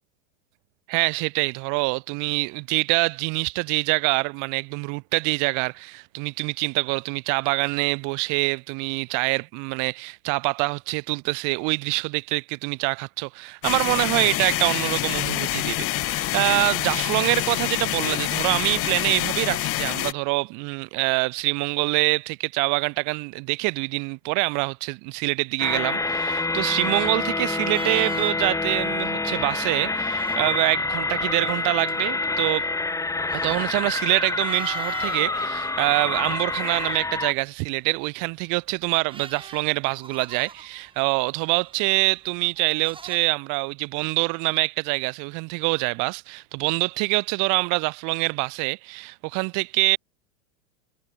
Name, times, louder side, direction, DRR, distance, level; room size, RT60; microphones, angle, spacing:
voice 1, 0.9-32.7 33.4-50.0, right 33 dB, 50° right, 4.3 m, -25 dB
sound 1, 13.6-20.1, left 16 dB, 35° left, 1.6 m, -26 dB
sound 2, 25.6-37.3, left 3 dB, 10° left, 2.1 m, -27 dB
sound 3, 26.1-28.6 28.9-29.1 29.9-30.8 31.3-35.3 35.8-36.8 38.3-43.2, right 4 dB, 15° right, 4.0 m, -42 dB
supercardioid pair, 130°, 39 cm